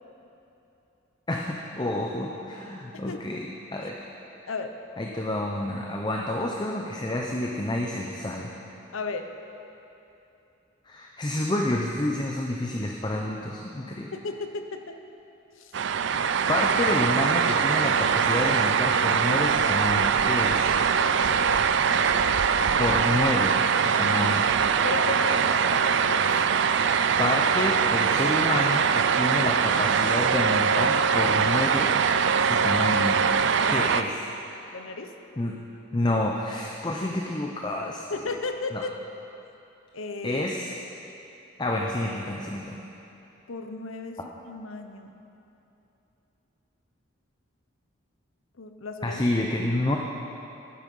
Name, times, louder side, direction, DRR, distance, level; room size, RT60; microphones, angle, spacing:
voice 1, 1.3-4.1 5.0-8.5 10.9-14.1 16.5-20.7 22.8-24.5 27.2-31.9 32.4-33.2 33.7-34.1 35.4-35.6 35.9-38.0 38.7-38.8 40.2-40.7 41.6-42.8 49.0-50.0, left 1 dB, 20° left, 0 dB, 0.5 m, -29 dB
voice 2, 2.9-3.4 4.5-4.7 8.9-9.3 14.1-15.0 15.5-15.7 20.9-21.6 24.8-26.3 33.6-33.9 34.7-35.1 38.1-38.9 39.9-40.5 43.5-45.1 48.6-49.2, left 3 dB, 80° left, 6 dB, 0.8 m, -34 dB
sound 1, 15.7-34.0, right 6 dB, 60° right, 0.4 m, -22 dB
11.5 x 9.6 x 5.4 m, 2.9 s
head